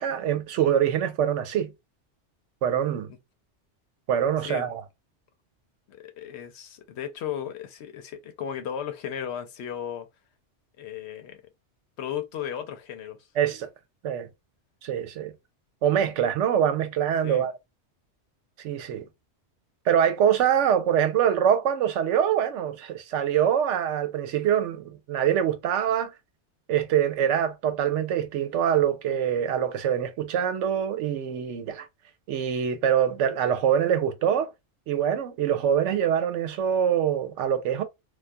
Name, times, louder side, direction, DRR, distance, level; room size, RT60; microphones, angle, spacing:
voice 1, 0.0-1.7 2.6-3.1 4.1-4.8 13.4-13.7 14.0-14.3 14.8-15.3 15.8-17.5 18.6-19.1 19.9-26.1 26.7-31.9 32.3-34.5 34.9-37.8, right 9 dB, 90° right, 0.9 m, -24 dB
voice 2, 5.9-10.1 10.8-11.4 12.0-13.3 17.2-17.5, left 9 dB, 70° left, 0.8 m, -35 dB
2.3 x 2.2 x 2.5 m
omnidirectional pair, 1.2 m